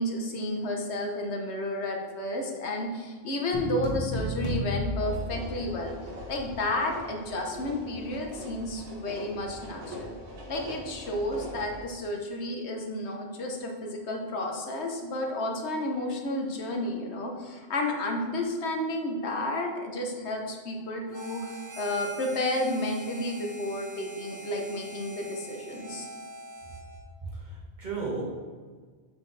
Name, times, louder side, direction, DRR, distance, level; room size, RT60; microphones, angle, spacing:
voice 1, 0.0-6.0 6.3-10.1 10.5-26.1, left 1 dB, 80° left, 2 dB, 1.3 m, -31 dB
sound 1, 3.5-6.1, equal, 25° left, 1.5 m, -32 dB
sound 2, 5.0-11.8, left 1 dB, 80° right, 1.5 m, -43 dB
Harmonica, 21.1-27.1, right 2 dB, 25° right, 0.4 m, -44 dB
voice 2, 27.2-28.2, right 4 dB, 45° right, -5 dB, 1.9 m, -34 dB
7.3 x 5.6 x 3.3 m, 1.5 s
omnidirectional pair, 1.1 m